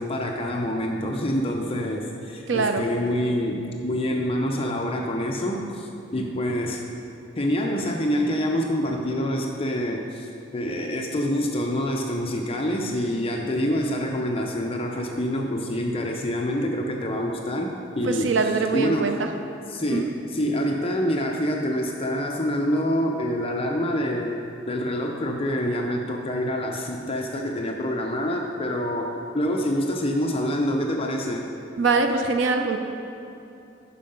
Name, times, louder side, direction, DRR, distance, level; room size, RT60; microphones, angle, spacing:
voice 1, 0.0-6.9 7.4-19.2 19.7-24.4 24.7-31.5, equal, 30° left, 1 dB, 0.5 m, -26 dB
voice 2, 2.5-2.8 18.0-19.3 19.9-20.1 31.8-32.8, right 4 dB, 70° right, 6 dB, 0.5 m, -23 dB
11.0 x 4.6 x 5.2 m, 2.7 s
head